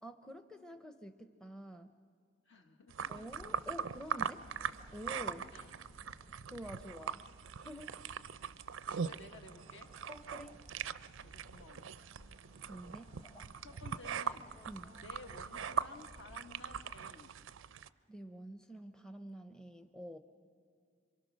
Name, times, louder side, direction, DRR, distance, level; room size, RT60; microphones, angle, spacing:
voice 1, 0.0-2.0 3.1-4.5 4.9-5.5 6.5-7.2 7.6-7.9 10.1-10.6 12.7-13.2 14.7-15.0 18.1-20.2, equal, 5° left, 8 dB, 0.6 m, -48 dB
voice 2, 2.4-3.3 5.5-5.8 8.0-8.1 8.8-9.9 11.2-12.1 13.6-14.5 14.9-17.3, left 2 dB, 70° left, 5 dB, 1.6 m, -54 dB
sound 1, 2.9-17.9, right 7 dB, 85° right, 0.5 m, -41 dB
sound 2, 3.0-17.1, equal, 25° left, 1.0 m, -60 dB
27.0 x 24.0 x 6.3 m, 2.3 s
head